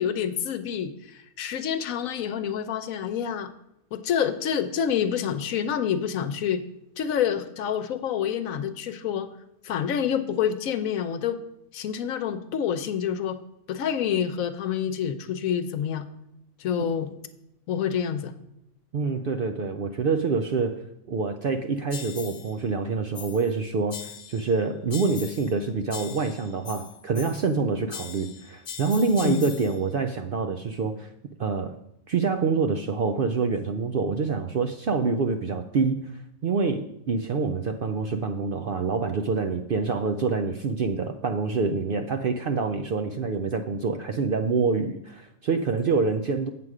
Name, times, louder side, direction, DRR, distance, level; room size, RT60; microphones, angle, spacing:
voice 1, 0.0-3.5 3.9-6.6 7.0-9.3 9.6-11.4 11.7-13.4 13.7-16.1 16.6-17.1 17.7-18.3 27.5-27.7 29.2-29.5, left 8 dB, 80° left, 10 dB, 1.1 m, -27 dB
voice 2, 18.9-31.1 31.4-31.8 32.1-46.5, right 4 dB, 65° right, 7 dB, 0.5 m, -26 dB
sound 1, 21.9-22.5 23.1-23.5 23.9-24.5 24.9-25.6 25.9-27.6 27.9-29.8, left 7 dB, 55° left, 0.8 m, -41 dB
7.7 x 7.7 x 4.8 m, 0.82 s
omnidirectional pair, 1.5 m